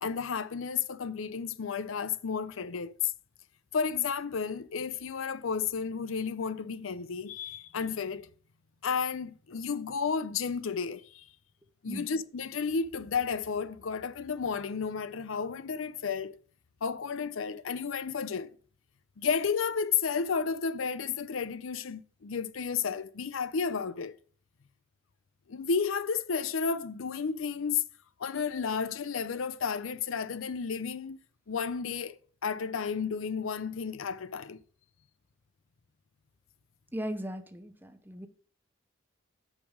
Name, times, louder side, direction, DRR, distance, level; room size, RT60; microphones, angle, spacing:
voice 1, 0.0-3.1 3.7-8.3 8.8-11.2 11.8-16.4 16.8-18.5 19.2-24.2 25.5-27.8 28.2-31.2 31.5-34.6, left 6 dB, 80° left, 0.6 m, -32 dB
voice 2, 36.9-38.3, equal, 10° right, 0.7 m, -37 dB
8.1 x 5.4 x 4.8 m
head